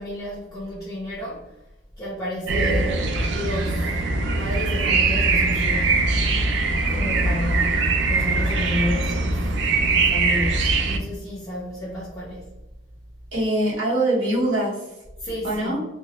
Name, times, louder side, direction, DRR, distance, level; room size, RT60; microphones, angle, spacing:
voice 1, 0.0-1.6 2.0-4.0 4.4-6.1 6.9-9.5 10.0-12.5 15.2-15.8, equal, 20° left, -8 dB, 0.5 m, -31 dB
sound 1, 2.5-11.0, right 3 dB, 70° right, 0.3 m, -22 dB
voice 2, 13.3-15.0 15.4-15.8, right 1 dB, 90° right, -7 dB, 1.1 m, -23 dB
2.3 x 2.0 x 2.8 m, 0.97 s
head